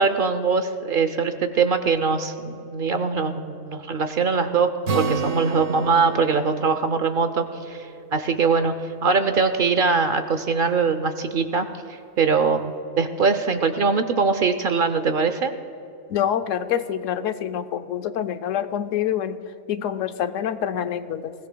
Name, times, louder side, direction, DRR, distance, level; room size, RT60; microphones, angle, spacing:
voice 1, 0.0-11.7 12.2-15.5, right 5 dB, 55° right, 9 dB, 0.7 m, -22 dB
Acoustic guitar, 4.9-8.6, right 5 dB, 75° right, 1.2 m, -30 dB
voice 2, 16.1-19.4 19.7-21.3, left 10 dB, 85° left, 11 dB, 1.0 m, -26 dB
21.0 x 16.5 x 2.2 m, 2.8 s
omnidirectional pair, 1.3 m